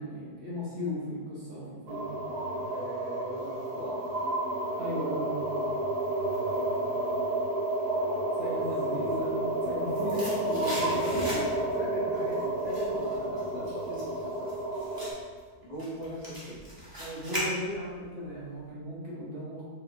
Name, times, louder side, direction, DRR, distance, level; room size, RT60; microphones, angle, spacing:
voice 1, 0.0-2.1 4.8-5.5 8.3-11.3 17.0-19.6, equal, 50° right, -7 dB, 0.9 m, -36 dB
sound 1, 1.9-15.1, right 1 dB, 80° right, 1.6 m, -31 dB
voice 2, 2.7-3.9 6.2-7.0 8.5-8.9 10.1-10.3 11.1-14.5 15.6-16.6, right 1 dB, 50° left, -9 dB, 0.6 m, -40 dB
sound 2, 9.6-11.8 12.1-18.0 18.3-18.4, equal, 15° right, 0.8 m, -39 dB
4.7 x 2.9 x 2.6 m, 1.5 s
omnidirectional pair, 1.7 m